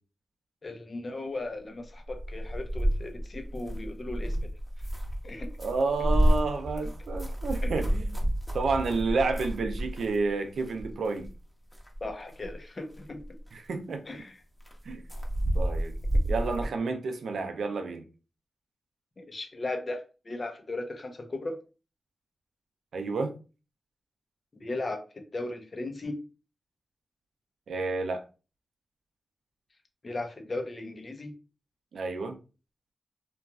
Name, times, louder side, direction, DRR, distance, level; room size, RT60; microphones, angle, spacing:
voice 1, 0.6-4.4 5.2-5.5 7.6-7.7 12.0-13.2 14.1-14.4 19.2-21.6 24.5-26.2 30.0-31.3, left 2 dB, 45° left, 0.7 m, -37 dB
sound 1, 2.0-10.3 10.6-11.4 11.7-12.6 12.9-13.5 14.1-14.2 14.6-16.7, equal, 10° left, 0.9 m, -30 dB
voice 2, 5.6-8.2 8.5-11.3 13.5-14.0 14.8-15.0 15.5-15.9 16.3-18.0 22.9-23.3 27.7-28.2 31.9-32.4, right 3 dB, 85° right, 0.5 m, -30 dB
3.0 x 2.4 x 2.3 m
cardioid pair, 65°, 0 cm